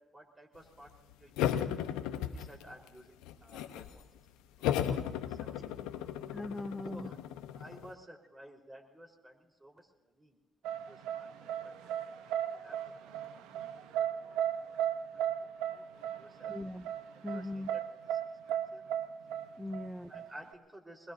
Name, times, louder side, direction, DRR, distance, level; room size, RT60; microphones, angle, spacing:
voice 1, 0.1-1.7 2.1-4.1 4.3-6.1 6.8-7.2 7.5-10.4 10.6-12.0 12.5-13.1 13.5-14.8 15.1-16.6 17.1-17.8 18.1-18.8 19.7-19.8 20.1-21.1, right 1 dB, 20° right, 0 dB, 4.2 m, -54 dB
sound 1, 1.4-2.9 3.2-4.0 4.6-7.9, left 10 dB, 80° left, 0.8 m, -35 dB
voice 2, 6.3-7.1 16.5-16.9 17.2-17.7 19.6-20.2, left 2 dB, 10° left, 10 dB, 0.6 m, -40 dB
sound 2, 10.6-20.5, right 10 dB, 80° right, 0.9 m, -35 dB
24.5 x 21.0 x 2.7 m, 1.1 s
hypercardioid pair, 55°, 0 cm